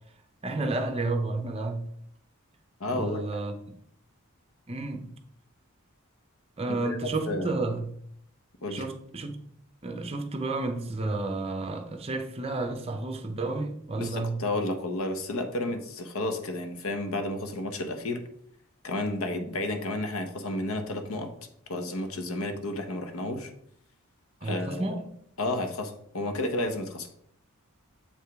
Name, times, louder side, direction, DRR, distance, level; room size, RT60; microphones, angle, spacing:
voice 1, 0.4-1.8 2.9-3.8 4.7-5.1 6.6-7.9 8.7-9.4 9.8-14.4 24.4-25.0, right 2 dB, 25° right, 0.7 m, -31 dB
voice 2, 2.8-3.4 6.7-7.0 7.3-7.6 8.6-8.8 14.0-18.2 18.8-21.3 21.7-23.5 24.4-25.0 25.4-27.1, left 2 dB, 70° left, 0.9 m, -31 dB
7.3 x 4.8 x 3.5 m
head